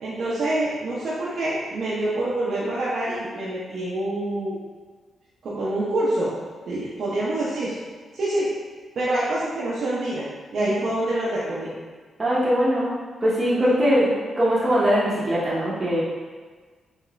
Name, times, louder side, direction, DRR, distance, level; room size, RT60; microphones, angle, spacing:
voice 1, 0.0-4.6 5.4-6.3 6.7-7.7 8.1-8.5 9.0-11.7 13.5-14.1, right 1 dB, 70° right, -8 dB, 0.6 m, -26 dB
voice 2, 12.2-14.1 14.4-16.0, equal, 30° right, -9 dB, 0.8 m, -21 dB
3.1 x 2.8 x 2.4 m, 1.5 s
cardioid pair, 70°, 0 cm